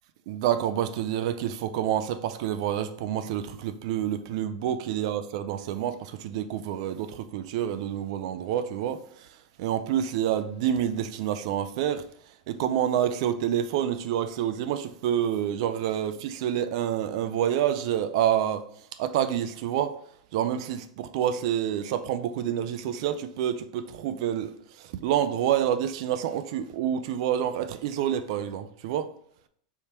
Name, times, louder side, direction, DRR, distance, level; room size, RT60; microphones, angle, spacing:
voice 1, 0.3-9.3 9.6-12.0 12.5-18.7 19.0-19.9 20.3-29.1, right 10 dB, 50° right, 0.3 m, -28 dB
3.5 x 2.8 x 4.6 m
supercardioid pair, 165°, 4 cm